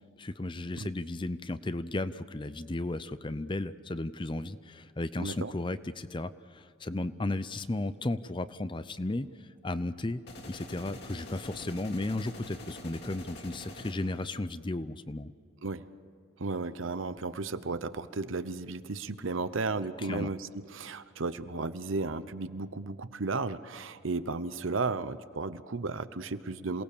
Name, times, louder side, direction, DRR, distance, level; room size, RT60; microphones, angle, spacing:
voice 1, 0.2-9.3 9.6-10.2 10.5-15.3 20.1-20.3, left 2 dB, 25° left, 13 dB, 0.6 m, -34 dB
voice 2, 5.2-5.5 15.6-15.9 16.4-26.8, right 3 dB, 75° right, 13 dB, 0.9 m, -34 dB
sound 1, 10.3-14.3, left 2 dB, 55° left, 2.7 m, -45 dB
27.5 x 18.5 x 6.9 m, 2.3 s
head